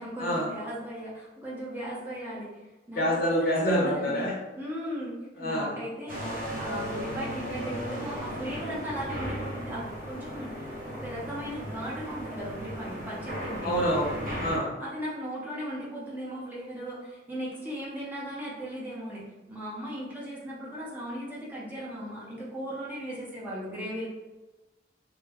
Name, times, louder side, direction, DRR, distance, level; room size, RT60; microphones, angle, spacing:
voice 1, 0.0-2.5 2.9-4.3 4.6-10.5 10.9-13.9 14.8-24.1, equal, 10° right, -7 dB, 0.6 m, -37 dB
voice 2, 2.9-4.3 5.4-5.7 13.6-14.7, equal, 55° left, -4 dB, 0.8 m, -26 dB
sound 1, 6.1-14.6, equal, 50° right, 0.8 m, -36 dB
2.2 x 2.1 x 3.4 m, 1.1 s
head